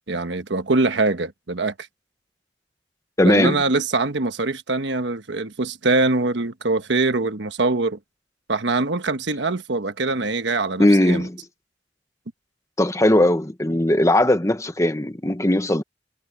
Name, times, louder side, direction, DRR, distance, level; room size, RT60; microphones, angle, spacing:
voice 1, 0.1-1.7 3.2-8.0 8.5-11.2, right 3 dB, 80° right, 1.3 m, -23 dB
voice 2, 3.2-3.6 10.8-11.4 12.8-15.8, left 1 dB, 15° left, 1.2 m, -18 dB
head